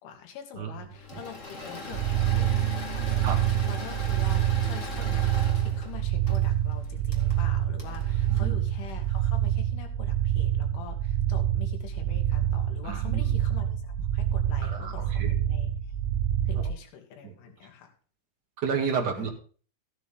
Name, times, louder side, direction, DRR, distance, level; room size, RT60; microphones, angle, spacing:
voice 1, 0.0-5.3 5.5-13.8 14.1-15.7 16.5-17.9 19.2-19.3, left 8 dB, 75° left, 3 dB, 4.6 m, -45 dB
Engine / Mechanisms, 0.9-9.3, left 2 dB, 45° left, 0.9 m, -40 dB
sound 1, 1.9-16.7, right 11 dB, 85° right, 3.2 m, -26 dB
voice 2, 12.8-13.2 14.6-15.3 17.2-17.3 18.6-19.3, right 6 dB, 60° right, 2 dB, 1.1 m, -30 dB
14.5 x 9.9 x 3.6 m, 0.39 s
omnidirectional pair, 5.6 m